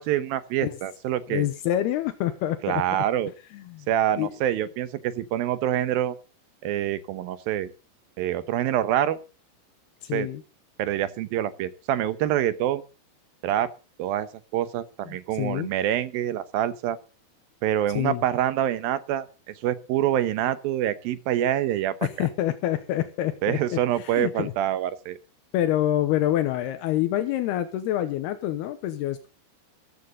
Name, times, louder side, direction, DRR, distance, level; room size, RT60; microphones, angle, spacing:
voice 1, 0.0-1.5 2.6-3.3 3.9-6.2 6.6-7.7 8.2-9.2 10.1-10.3 10.8-12.8 13.4-13.7 14.0-14.3 14.5-17.0 17.6-19.3 19.6-22.0 23.4-25.2, right 11 dB, 70° right, 13 dB, 2.6 m, -26 dB
voice 2, 1.3-3.0 3.5-3.9 4.2-4.3 10.0-10.4 15.1-15.7 18.0-18.2 22.0-24.5 25.5-29.3, left 13 dB, 80° left, 9 dB, 2.9 m, -27 dB
14.0 x 13.5 x 3.9 m, 0.33 s
omnidirectional pair, 4.7 m